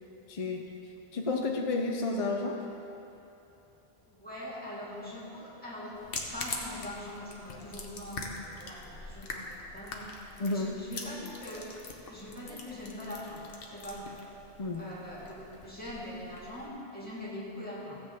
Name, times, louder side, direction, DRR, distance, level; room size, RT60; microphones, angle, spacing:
voice 1, 0.3-0.7 1.1-2.6 10.4-10.8 14.6-14.8, left 3 dB, 40° left, 2 dB, 0.7 m, -31 dB
voice 2, 4.1-6.0 6.3-11.7 12.1-13.4 13.7-14.2 14.7-18.0, left 1 dB, 10° left, -8 dB, 2.2 m, -42 dB
sound 1, 5.9-16.7, left 3 dB, 65° left, 1.2 m, -44 dB
16.0 x 7.9 x 3.7 m, 3.0 s
omnidirectional pair, 1.0 m